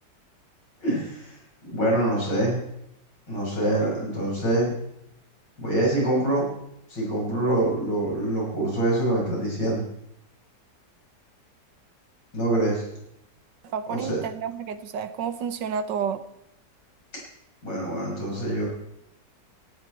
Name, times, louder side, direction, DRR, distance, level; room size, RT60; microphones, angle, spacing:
voice 1, 0.8-1.4 1.7-2.6 3.3-4.8 5.6-6.4 6.9-9.9 12.3-12.8 13.9-14.2 17.6-18.6, right 1 dB, 75° left, -3 dB, 6.6 m, -25 dB
voice 2, 13.6-16.2, right 7 dB, 85° right, 12 dB, 1.6 m, -30 dB
18.0 x 12.5 x 4.5 m, 0.78 s
omnidirectional pair, 1.9 m